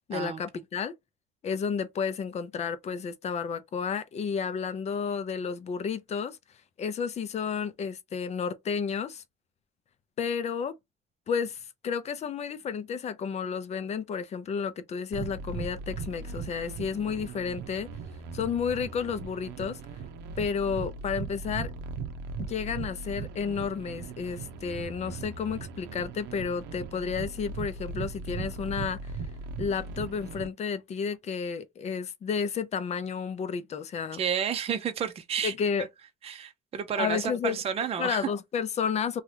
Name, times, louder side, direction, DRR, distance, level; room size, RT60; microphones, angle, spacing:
voice 1, 0.1-0.9 1.4-6.4 6.8-9.2 10.2-10.7 11.3-17.9 18.3-19.8 20.4-21.7 22.4-29.1 29.6-34.2 35.4-35.8 37.0-37.6 38.0-39.2, left 6 dB, 40° left, 0.5 m, -31 dB
sound 1, 15.1-30.5, right 4 dB, 85° right, 0.7 m, -38 dB
voice 2, 34.1-35.5 36.2-38.3, right 7 dB, 35° right, 0.6 m, -31 dB
2.8 x 2.3 x 3.2 m
cardioid pair, 110°, 17 cm